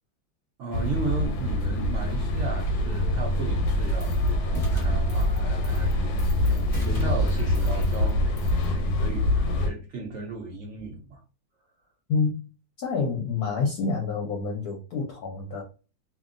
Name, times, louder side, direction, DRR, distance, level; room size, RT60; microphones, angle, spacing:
voice 1, 0.6-11.2, right 3 dB, 85° right, 0.6 m, -36 dB
sound 1, 0.7-9.7, left 1 dB, 90° left, 1.3 m, -25 dB
sound 2, 4.0-4.3 4.5-5.4 5.6-5.9 6.2-8.1 8.4-8.6, left 1 dB, 15° left, 0.9 m, -31 dB
voice 2, 12.8-15.6, left 4 dB, 65° left, 1.0 m, -27 dB
2.7 x 2.6 x 2.5 m
omnidirectional pair, 2.0 m